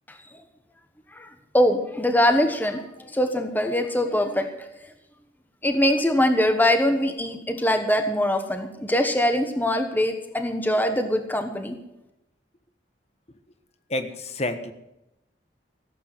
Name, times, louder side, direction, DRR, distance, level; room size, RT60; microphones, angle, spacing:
voice 1, 1.5-4.5 5.6-11.7, left 1 dB, 10° left, 6 dB, 1.2 m, -22 dB
voice 2, 13.9-14.7, left 1 dB, 35° left, 9 dB, 1.4 m, -29 dB
16.0 x 8.7 x 7.6 m, 0.91 s
head